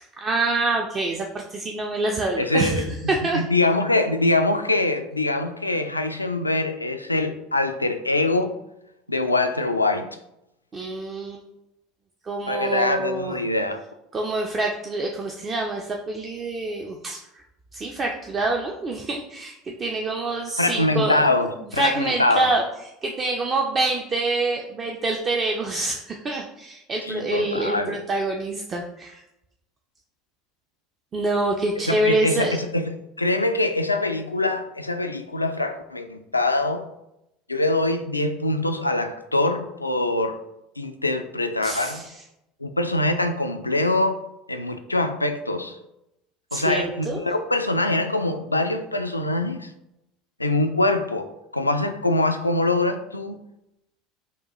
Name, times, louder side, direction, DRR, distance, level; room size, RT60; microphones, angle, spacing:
voice 1, 0.2-3.4 10.7-11.4 12.2-13.4 14.1-17.4 17.7-21.2 21.6-22.6 23.0-29.2 31.1-32.6 41.6-42.2 46.5-47.2, right 2 dB, 30° right, 1 dB, 0.4 m, -26 dB
voice 2, 2.4-2.9 3.3-8.5 9.1-10.1 12.5-13.8 20.6-21.5 21.7-22.5 27.1-28.0 31.9-32.9 33.2-36.8 37.5-40.4 40.8-42.0 42.6-44.2 44.5-45.8 46.5-49.7 50.4-53.4, left 2 dB, 90° left, 7 dB, 0.3 m, -23 dB
5.3 x 2.2 x 3.0 m, 0.86 s
figure-of-eight pair, 70°, 0 cm